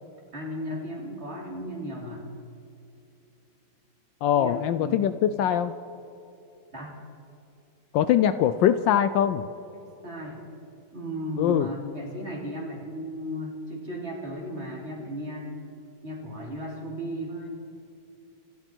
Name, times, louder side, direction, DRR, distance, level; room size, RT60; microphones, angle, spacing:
voice 1, 0.3-2.3 4.3-5.2 6.7-7.0 9.7-10.4 10.9-15.5 16.0-17.5, equal, 30° right, -1 dB, 3.1 m, -35 dB
voice 2, 4.2-5.7 7.9-9.5 11.4-11.7, left 10 dB, 75° left, 12 dB, 1.2 m, -22 dB
27.0 x 12.0 x 4.5 m, 2.8 s
omnidirectional pair, 2.2 m